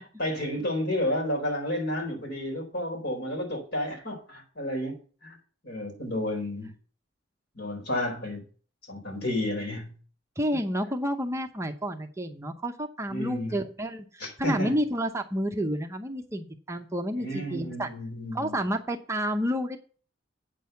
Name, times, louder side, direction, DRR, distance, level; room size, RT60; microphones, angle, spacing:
voice 1, 0.2-5.0 5.2-5.4 5.6-6.7 7.5-8.4 8.9-9.9 13.1-13.6 14.2-14.7 17.2-18.6, left 1 dB, 60° left, 0 dB, 4.5 m, -31 dB
voice 2, 10.4-17.9 18.3-19.8, equal, 15° right, 5 dB, 0.8 m, -30 dB
8.5 x 6.2 x 6.9 m, 0.40 s
head